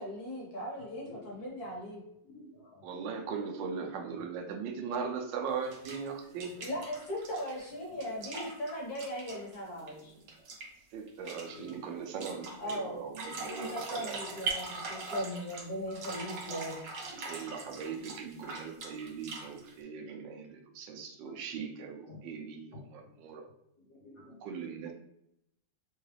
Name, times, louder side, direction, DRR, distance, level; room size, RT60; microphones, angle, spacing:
voice 1, 0.0-2.0 6.6-10.2 12.6-13.0 13.4-16.8, equal, 60° left, -2 dB, 1.5 m, -38 dB
voice 2, 1.0-1.3 2.2-2.8 6.2-6.4 7.9-8.1 9.7-10.1 10.3-10.4 11.4-12.1 14.2-14.5 15.0-15.1 15.9-16.0 17.0-17.8 19.3-19.7 22.1-22.2 22.5-23.1 23.8-24.4, left 1 dB, 85° left, -5 dB, 1.6 m, -53 dB
voice 3, 2.8-6.5 10.9-14.2 17.2-23.4 24.4-24.9, right 6 dB, 85° right, 3 dB, 1.3 m, -39 dB
sound 1, 5.7-6.1 6.4-10.0 10.3-10.7 11.1-11.8 12.2-12.8 13.1-15.7 15.9-19.7, right 3 dB, 60° right, 1.1 m, -41 dB
3.8 x 2.3 x 3.1 m, 0.79 s
omnidirectional pair, 2.0 m